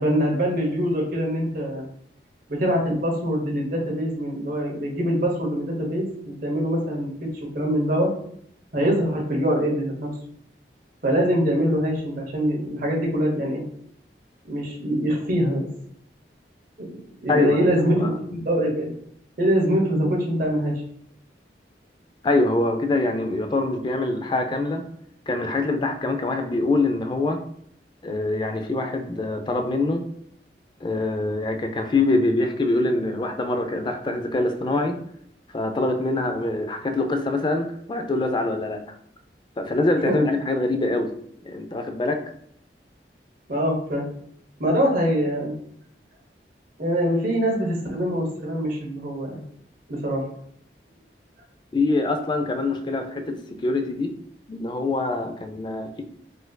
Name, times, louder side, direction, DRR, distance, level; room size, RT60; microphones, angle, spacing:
voice 1, 0.0-1.8 2.5-8.1 8.7-10.1 11.0-13.6 14.4-15.7 16.8-18.9 19.4-20.7 40.1-40.2 43.5-44.1 44.6-45.6 46.8-49.4 49.9-50.2, equal, 50° right, 0 dB, 0.8 m, -24 dB
voice 2, 17.3-18.1 22.2-24.8 25.3-27.4 28.0-30.0 30.8-35.0 35.5-38.8 39.6-41.1 41.4-42.2 51.7-54.1 54.5-56.0, left 2 dB, 25° left, 6 dB, 0.3 m, -24 dB
4.1 x 2.6 x 2.2 m, 0.67 s
head